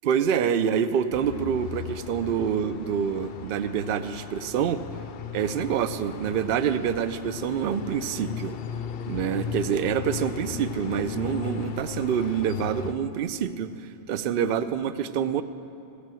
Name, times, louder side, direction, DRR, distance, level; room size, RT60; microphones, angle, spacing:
voice 1, 0.0-4.8 5.3-8.5 9.1-13.7 14.1-15.4, right 8 dB, 60° right, 12 dB, 0.7 m, -26 dB
sound 1, 1.1-12.9, left 7 dB, 60° left, 0.7 m, -36 dB
16.0 x 8.4 x 7.5 m, 2.8 s
omnidirectional pair, 1.2 m